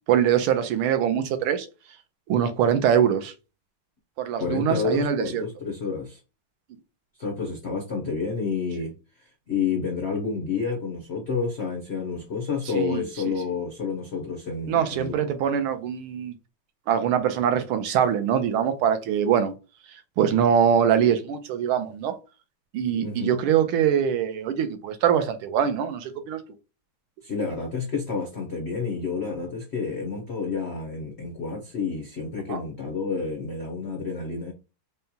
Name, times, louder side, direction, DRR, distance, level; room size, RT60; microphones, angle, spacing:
voice 1, 0.1-1.7 2.3-3.3 4.2-5.4 12.7-13.0 14.7-16.3 16.9-19.5 20.2-22.2 22.7-26.4 32.5-32.6, right 8 dB, 85° right, 1.5 m, -23 dB
voice 2, 4.4-6.2 7.2-8.9 9.2-15.3 23.0-23.4 27.2-34.5, left 5 dB, 80° left, 0.5 m, -29 dB
5.4 x 2.2 x 2.7 m
omnidirectional pair, 2.3 m